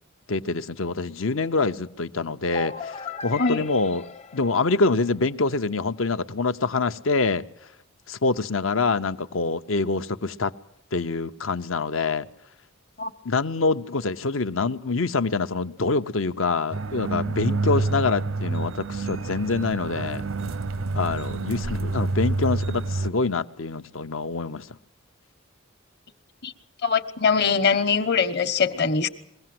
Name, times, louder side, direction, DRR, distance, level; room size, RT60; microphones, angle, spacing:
voice 1, 0.3-3.0 3.2-4.0 4.3-7.5 8.1-10.5 10.9-12.3 13.2-20.2 20.9-24.6, left 3 dB, 80° left, 0.9 m, -25 dB
sound 1, 2.5-5.3, left 5 dB, 35° left, 0.7 m, -37 dB
sound 2, 16.7-23.1, right 3 dB, 80° right, 0.7 m, -28 dB
voice 2, 26.8-29.1, left 5 dB, 55° left, 1.2 m, -22 dB
22.5 x 16.5 x 7.8 m
head